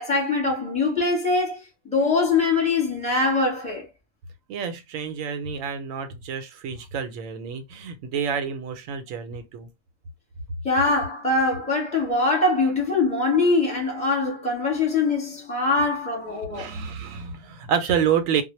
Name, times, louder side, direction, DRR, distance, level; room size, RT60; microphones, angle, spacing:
voice 1, 0.0-3.9 10.6-16.7, left 3 dB, 5° left, 0.8 m, -23 dB
voice 2, 4.5-9.7 16.4-18.4, right 7 dB, 90° right, 1.0 m, -28 dB
2.2 x 2.1 x 3.0 m
omnidirectional pair, 1.3 m